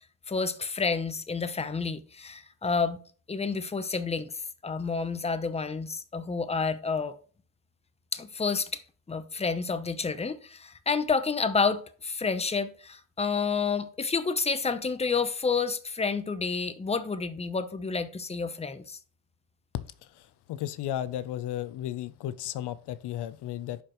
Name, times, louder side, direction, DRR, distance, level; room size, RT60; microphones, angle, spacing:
voice 1, 0.3-3.0 3.3-4.3 4.6-7.1 8.1-8.8 9.1-19.0, left 5 dB, 15° left, 0.7 m, -29 dB
voice 2, 20.2-23.8, left 12 dB, 85° left, 0.6 m, -34 dB
11.0 x 5.0 x 3.0 m
cardioid pair, 90°, 39 cm